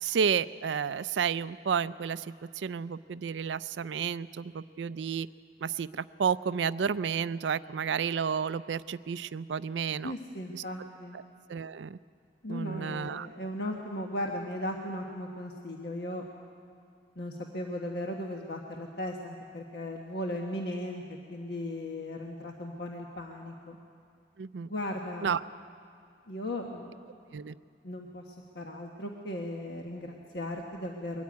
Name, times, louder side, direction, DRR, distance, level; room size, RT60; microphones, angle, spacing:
voice 1, 0.0-2.3 2.6-5.3 5.6-10.1 10.5-10.6 11.5-12.0 12.5-13.3 24.4-24.7 25.2-25.4 27.3-27.5, right 7 dB, 85° right, 16 dB, 0.4 m, -31 dB
voice 2, 10.0-11.2 12.4-16.2 17.2-23.8 24.6-25.4 26.3-27.0 27.3-27.4 27.8-31.2, left 1 dB, 65° left, 1 dB, 1.4 m, -37 dB
22.5 x 14.0 x 9.6 m, 2.3 s
head